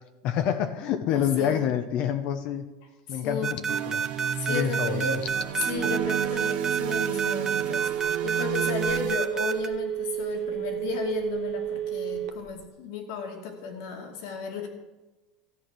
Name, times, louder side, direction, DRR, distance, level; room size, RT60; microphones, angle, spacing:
voice 1, 0.2-2.6 3.1-3.6 3.9-4.0 4.5-5.0, left 9 dB, 50° left, 8 dB, 0.8 m, -27 dB
voice 2, 1.1-1.6 3.1-3.6 4.3-5.2 5.6-7.9 8.2-14.7, left 5 dB, 75° left, 2 dB, 2.6 m, -34 dB
sound 1, 3.4-9.7, right 6 dB, 20° right, 0.7 m, -28 dB
sound 2, 3.7-9.2, right 9 dB, 50° right, 0.7 m, -33 dB
Telephone, 5.3-12.6, right 11 dB, 75° right, 1.0 m, -31 dB
14.0 x 8.6 x 6.1 m, 1.1 s
supercardioid pair, 145°, 2 cm